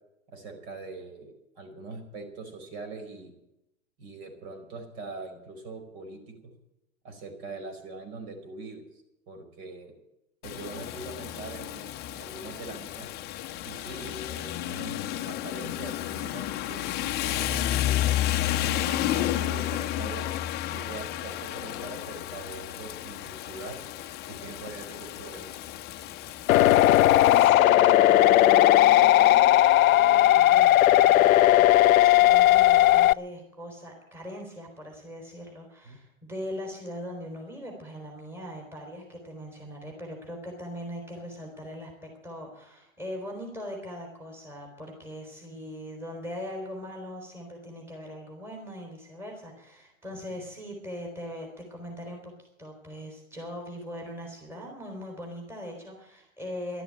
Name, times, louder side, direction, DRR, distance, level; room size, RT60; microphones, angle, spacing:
voice 1, 0.3-3.3 4.0-6.5 7.0-9.9 10.4-13.1 13.6-18.0 18.6-20.3 20.7-23.8 24.3-25.6 35.8-36.0, right 3 dB, 45° right, 5 dB, 4.7 m, -42 dB
Rain, 10.4-27.5, left 13 dB, 25° left, 0.9 m, -32 dB
sound 1, 26.5-33.1, left 14 dB, 85° left, 0.5 m, -17 dB
voice 2, 27.2-56.8, equal, 5° right, 0 dB, 3.7 m, -40 dB
13.0 x 12.0 x 8.7 m, 0.85 s
hypercardioid pair, 135°, 40 cm